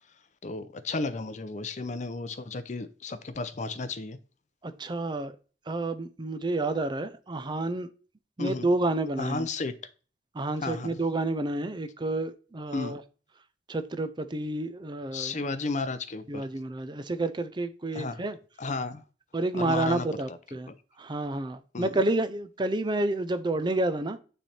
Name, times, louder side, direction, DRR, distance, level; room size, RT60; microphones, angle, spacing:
voice 1, 0.4-4.2 8.4-8.7 9.2-9.8 10.6-11.0 12.7-13.0 15.1-16.5 17.9-18.2 18.6-19.0 19.5-20.4 20.7-20.8 21.7-22.0, left 3 dB, 40° left, 0.6 m, -33 dB
voice 2, 4.6-5.3 5.7-7.9 8.4-9.5 10.3-13.0 13.7-15.4 16.3-18.4 19.3-20.7 21.0-24.2, right 2 dB, 25° right, 0.5 m, -29 dB
9.1 x 3.3 x 4.3 m
head